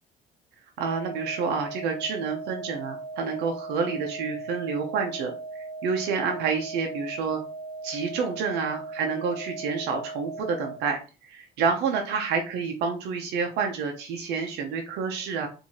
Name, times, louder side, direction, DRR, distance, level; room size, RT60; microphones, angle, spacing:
sound 1, 0.8-10.8, right 3 dB, 20° left, 0.5 m, -38 dB
voice 1, 0.8-7.4 7.8-15.5, right 5 dB, 80° right, 3 dB, 0.6 m, -29 dB
4.5 x 2.6 x 2.8 m, 0.35 s
cardioid pair, 110°, 17 cm